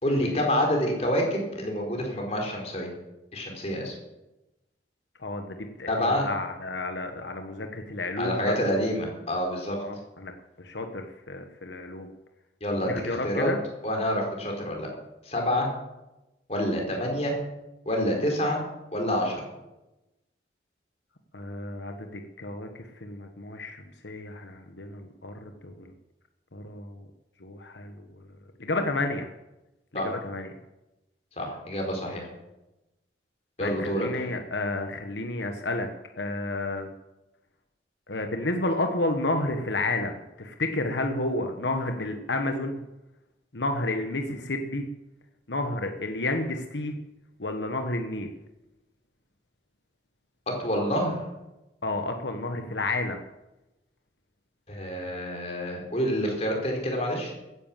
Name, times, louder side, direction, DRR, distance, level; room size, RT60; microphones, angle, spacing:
voice 1, 0.0-2.9 3.3-4.0 5.9-6.3 8.2-9.8 12.6-13.5 13.8-14.9 15.2-15.7 16.5-17.4 17.8-18.6 18.9-19.4 29.9-30.1 31.4-32.3 33.6-34.1 50.6-51.2 54.7-57.3, equal, 35° left, 1 dB, 4.2 m, -27 dB
voice 2, 5.2-8.5 9.8-10.3 10.6-12.1 12.8-13.6 21.3-25.9 26.5-27.0 27.4-28.0 28.6-29.3 29.9-30.5 33.6-35.9 36.2-36.9 38.1-42.8 43.5-44.8 45.5-47.0 47.4-48.3 51.8-53.2, left 2 dB, 85° left, 5 dB, 1.3 m, -31 dB
15.0 x 10.5 x 7.4 m, 0.98 s
head